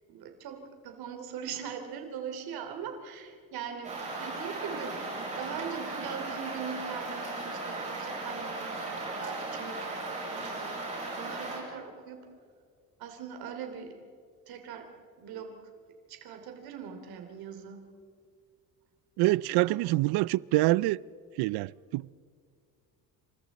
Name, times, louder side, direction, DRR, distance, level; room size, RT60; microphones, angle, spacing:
voice 1, 0.1-10.8 11.2-12.2 13.0-13.9 14.5-14.9 15.2-15.5 16.1-17.8 19.7-19.9, right 7 dB, 75° right, 3.0 m, -41 dB
sound 1, 3.8-11.6, right 2 dB, 20° right, 7.7 m, -36 dB
voice 2, 19.2-21.0 21.4-22.1, right 19 dB, 90° right, 0.5 m, -26 dB
29.0 x 27.0 x 4.2 m
cardioid pair, 175°, 37 cm